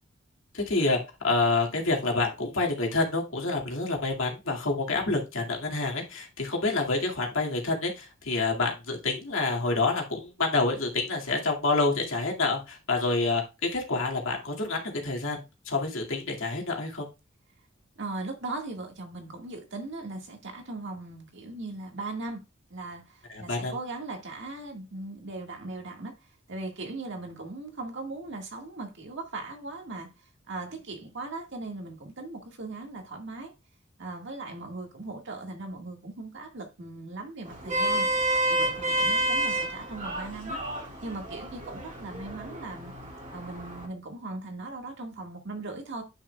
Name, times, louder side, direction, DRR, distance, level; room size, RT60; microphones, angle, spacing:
voice 1, 0.5-1.0 1.2-17.1 23.3-23.7, left 3 dB, 75° left, 2.1 m, -28 dB
voice 2, 18.0-22.4 22.7-26.1 26.5-33.5 34.0-38.1 38.5-42.9 43.3-46.0, right 2 dB, 65° right, 1.8 m, -39 dB
Vehicle horn car horn honking, 37.5-43.9, right 1 dB, 40° right, 2.3 m, -30 dB
9.7 x 6.3 x 2.3 m
head